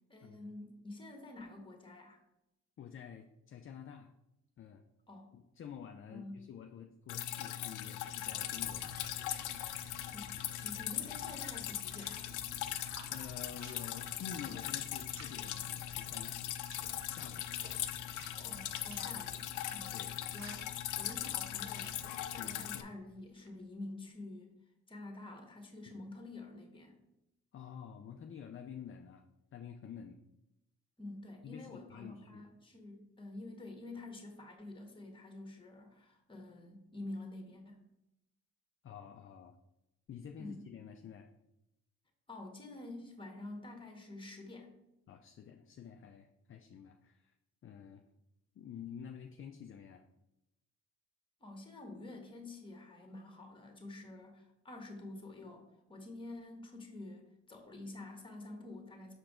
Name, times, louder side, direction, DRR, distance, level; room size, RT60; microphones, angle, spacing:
voice 1, 0.1-2.2 5.1-5.3 6.1-6.4 10.0-12.3 18.4-19.9 20.3-20.7 21.0-22.0 22.3-24.6 24.9-27.0 31.0-37.8 40.4-40.6 42.3-44.7 51.4-59.1, left 2 dB, 15° left, 3 dB, 1.5 m, -48 dB
voice 2, 2.8-4.1 4.6-4.8 5.3-9.2 13.1-16.4 17.1-17.5 19.9-20.2 22.4-22.7 25.9-26.1 27.5-29.3 29.5-30.2 31.4-32.4 38.8-39.6 40.1-41.3 45.1-47.3 47.6-48.0 48.5-50.0, left 8 dB, 45° left, 5 dB, 0.5 m, -49 dB
Drip, 7.1-22.8, left 13 dB, 90° left, 0.5 m, -40 dB
sound 1, 7.6-23.6, right 4 dB, 60° right, 1.2 m, -55 dB
6.4 x 4.7 x 3.7 m, 0.87 s
cardioid pair, 90°, 30 cm